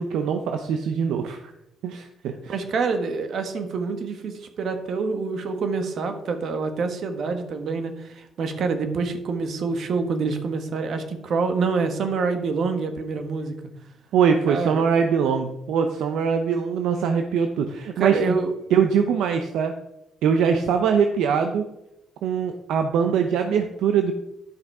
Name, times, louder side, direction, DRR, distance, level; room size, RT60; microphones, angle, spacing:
voice 1, 0.0-1.4 1.8-2.5 14.1-18.4 18.7-19.7 20.2-21.7 22.2-24.1, right 6 dB, 85° right, 6 dB, 0.6 m, -22 dB
voice 2, 2.5-13.5 14.5-14.8 18.0-18.6, right 4 dB, 65° right, 7 dB, 1.4 m, -26 dB
10.5 x 5.9 x 4.8 m, 0.88 s
cardioid pair, 90°, 0 cm